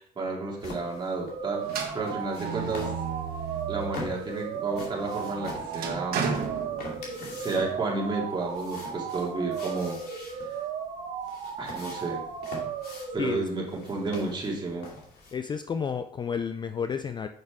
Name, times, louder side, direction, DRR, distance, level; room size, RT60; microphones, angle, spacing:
voice 1, 0.0-2.9 3.7-6.2 7.2-10.0 11.6-12.2 13.1-14.9, right 3 dB, 25° right, -2 dB, 2.3 m, -31 dB
sound 1, 0.6-15.3, left 3 dB, 70° left, 2.4 m, -45 dB
sound 2, 1.2-13.1, right 7 dB, 85° right, 1.3 m, -36 dB
sound 3, 1.7-4.1 4.5-7.4, right 6 dB, 60° right, 1.5 m, -34 dB
voice 2, 13.2-13.5 15.3-17.3, left 6 dB, 25° left, 9 dB, 0.3 m, -31 dB
6.6 x 5.8 x 3.5 m, 0.65 s
cardioid pair, 110°, 17 cm